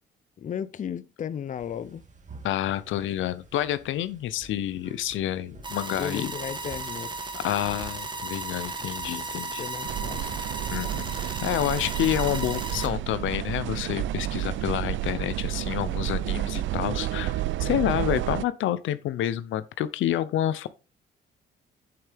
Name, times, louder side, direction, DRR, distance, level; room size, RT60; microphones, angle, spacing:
voice 1, 0.4-2.0 6.0-7.4 9.6-10.4, left 8 dB, 40° left, 0.5 m, -35 dB
sound 1, 1.6-12.0, right 3 dB, 40° right, 1.8 m, -50 dB
voice 2, 2.4-6.3 7.3-9.7 10.7-11.1 11.4-20.7, left 12 dB, 80° left, 0.7 m, -28 dB
sound 2, 5.6-12.9, right 3 dB, 25° right, 1.3 m, -35 dB
sound 3, 9.8-18.4, right 14 dB, 75° right, 0.4 m, -30 dB
8.7 x 7.3 x 3.4 m
cardioid pair, 90°, 20 cm